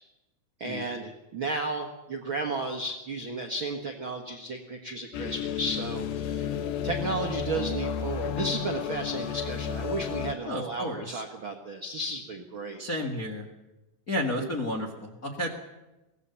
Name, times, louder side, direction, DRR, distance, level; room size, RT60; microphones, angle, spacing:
voice 1, 0.6-6.6 6.8-12.8 14.3-14.5, right 2 dB, 60° right, 3 dB, 1.3 m, -33 dB
sound 1, 5.1-10.3, left 8 dB, 90° left, 3.2 m, -32 dB
voice 2, 10.4-11.2 12.8-13.5 14.1-15.5, left 1 dB, 40° left, 2 dB, 1.2 m, -32 dB
23.5 x 18.0 x 7.0 m, 1.0 s
omnidirectional pair, 4.7 m